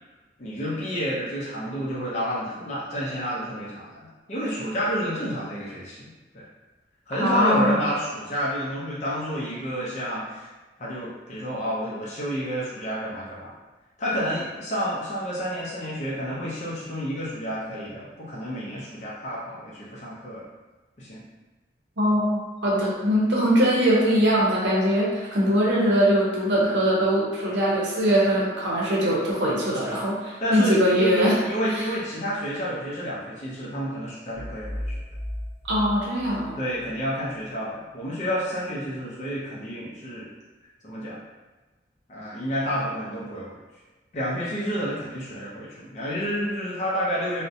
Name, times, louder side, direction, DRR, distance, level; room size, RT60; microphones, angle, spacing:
voice 1, 0.4-6.5 7.1-10.5 10.8-13.5 14.0-20.4 21.0-21.2 30.4-35.0 36.6-40.3 40.8-41.2 42.1-43.6 44.1-47.4, equal, 40° left, -7 dB, 0.4 m, -30 dB
voice 2, 7.2-7.8 22.0-31.4 35.7-36.6, equal, 85° right, -5 dB, 0.6 m, -22 dB
sound 1, 34.3-37.0, left 1 dB, 5° right, 0.7 m, -35 dB
2.4 x 2.0 x 2.6 m, 1.2 s
head